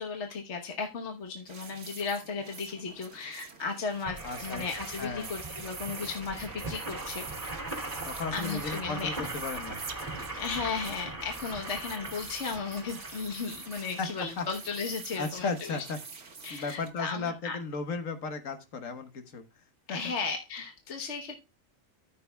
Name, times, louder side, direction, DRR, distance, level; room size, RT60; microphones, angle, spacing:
voice 1, 0.0-7.3 8.3-9.1 10.3-15.8 16.4-17.6 19.9-21.4, left 5 dB, 60° left, 3 dB, 1.4 m, -35 dB
sound 1, 1.5-16.9, right 5 dB, 70° right, 1.6 m, -46 dB
sound 2, 4.0-15.2 15.8-15.9 16.1-16.2, right 2 dB, 30° right, 2.2 m, -40 dB
voice 2, 4.2-4.6 5.0-5.3 8.0-9.8 14.0-14.1 14.4-14.5 15.2-16.0 16.5-19.4 19.9-20.0, left 4 dB, 85° left, 7 dB, 1.6 m, -35 dB
14.0 x 6.8 x 2.3 m, 0.28 s
omnidirectional pair, 1.3 m